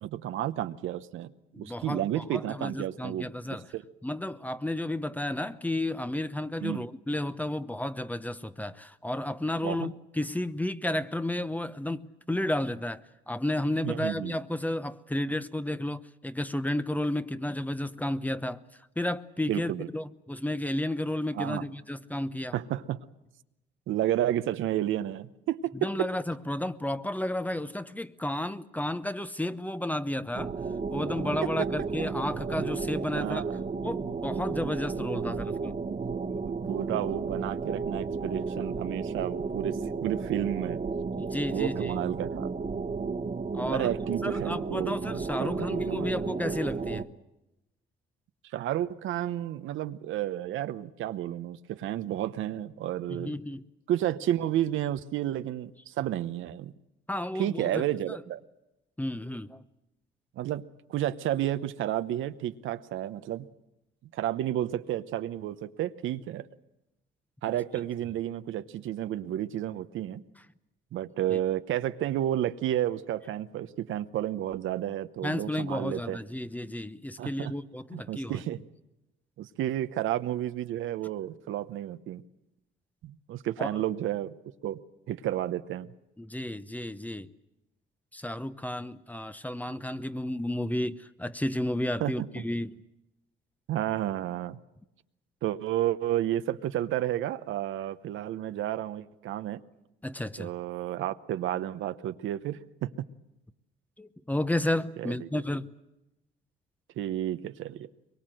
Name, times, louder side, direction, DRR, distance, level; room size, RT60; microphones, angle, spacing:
voice 1, 0.0-1.3 1.6-3.3 3.7-3.8 6.6-6.8 9.6-9.9 13.8-14.3 19.5-19.9 21.4-21.6 22.5-23.0 23.9-26.1 31.4-31.7 33.1-33.6 36.3-36.4 36.7-40.8 41.5-42.5 43.7-45.0 45.4-46.1 48.5-53.3 53.9-56.7 57.4-58.4 60.4-60.6 60.9-63.5 64.1-66.5 67.4-70.2 70.9-76.2 77.2-77.5 77.9-78.6 79.4-82.2 83.0-84.3 84.6-84.8 85.1-85.9 92.0-92.4 93.7-94.6 95.4-99.6 100.4-102.9 105.1-105.2 107.0-107.9, right 12 dB, 80° right, 0.9 m, -31 dB
voice 2, 1.5-3.7 4.0-22.5 25.7-30.6 30.9-33.4 33.8-35.7 41.2-42.0 43.5-43.9 44.2-47.1 53.1-53.6 57.1-58.2 59.0-59.6 71.3-71.4 75.2-78.4 83.6-83.8 86.2-87.3 88.1-92.8 100.0-100.5 104.0-105.7, left 1 dB, 10° left, 0.9 m, -32 dB
sound 1, 30.3-47.1, right 4 dB, 35° right, 1.3 m, -33 dB
23.0 x 22.5 x 7.8 m
cardioid pair, 90°, 20 cm